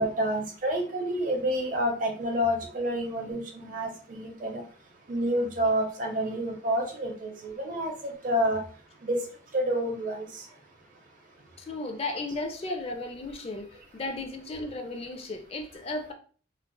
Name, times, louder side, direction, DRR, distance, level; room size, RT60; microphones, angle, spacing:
voice 1, 0.0-4.6 5.1-8.6 9.0-9.2 9.5-10.4, equal, 45° right, 2 dB, 0.8 m, -29 dB
voice 2, 11.6-16.1, left 2 dB, 30° left, 4 dB, 0.4 m, -35 dB
4.4 x 2.3 x 2.2 m, 0.41 s
head